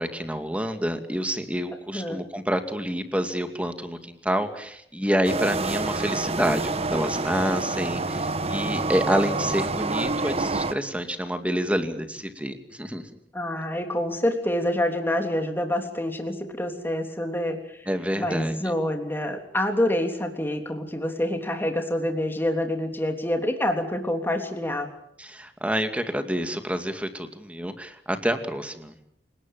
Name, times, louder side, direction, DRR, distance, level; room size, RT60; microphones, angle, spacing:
voice 1, 0.0-13.1 17.9-18.6 25.2-28.9, equal, 10° right, 7 dB, 2.3 m, -28 dB
voice 2, 1.9-2.2 13.3-17.8 18.2-24.9, left 1 dB, 10° left, 4 dB, 3.4 m, -27 dB
sound 1, 5.2-10.7, right 3 dB, 35° right, 1.3 m, -28 dB
28.5 x 19.5 x 7.5 m, 0.71 s
head